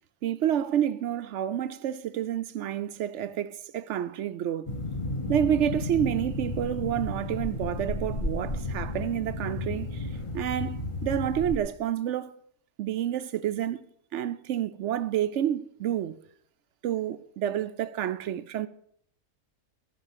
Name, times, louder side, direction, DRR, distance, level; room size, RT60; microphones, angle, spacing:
voice 1, 0.2-4.7 5.3-10.1 10.3-12.3 12.8-13.9 14.1-16.2 16.8-18.7, right 10 dB, 65° right, 0.8 m, -29 dB
sound 1, 4.7-11.6, left 2 dB, 25° left, 0.9 m, -33 dB
13.0 x 5.5 x 7.4 m
omnidirectional pair, 1.5 m